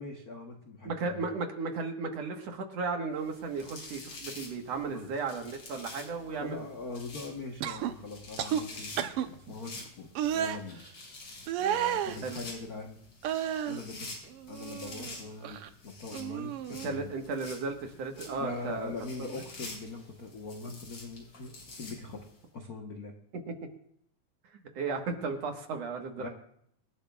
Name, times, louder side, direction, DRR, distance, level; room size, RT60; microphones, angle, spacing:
voice 1, 0.0-1.3 4.9-5.2 6.2-10.1 10.3-10.8 11.6-13.0 13.6-14.1 14.5-17.1 18.4-22.2 22.5-23.1 26.2-26.3, left 3 dB, 70° left, 2 dB, 0.8 m, -42 dB
voice 2, 0.9-6.6 12.2-12.4 16.8-18.9 23.5-23.6 24.7-26.3, right 4 dB, 65° right, 4 dB, 2.3 m, -35 dB
sound 1, 3.2-22.4, left 2 dB, 50° left, 4.3 m, -48 dB
sound 2, 7.6-7.9 8.4-8.6 9.0-9.3 10.2-10.6 11.5-12.2 13.2-13.8 14.3-15.2 15.4-15.7 16.1-16.9 18.2-18.4, right 10 dB, 80° right, 1.3 m, -32 dB
25.5 x 12.0 x 2.3 m, 0.69 s
omnidirectional pair, 3.4 m